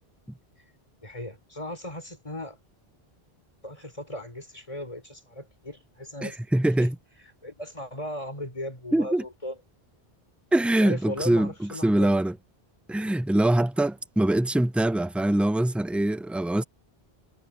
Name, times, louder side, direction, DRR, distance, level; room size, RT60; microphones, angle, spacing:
voice 1, 1.0-2.6 3.6-6.5 6.8-6.9 7.4-9.6 10.8-12.2, left 1 dB, 30° left, 4.7 m, -37 dB
voice 2, 6.2-7.0 8.9-9.2 10.5-12.3 12.9-16.6, right 1 dB, ahead, 0.4 m, -23 dB
omnidirectional pair, 1.0 m